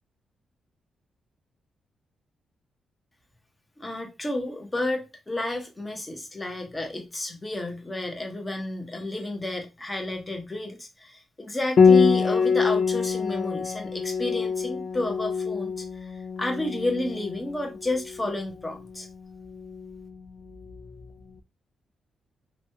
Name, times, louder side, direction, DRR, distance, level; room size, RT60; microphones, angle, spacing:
voice 1, 3.8-16.1 16.4-19.1, left 1 dB, 20° left, 0.8 m, -31 dB
Piano, 11.8-21.1, left 5 dB, 60° left, 0.4 m, -25 dB
2.9 x 2.3 x 2.7 m
cardioid pair, 105°, 0 cm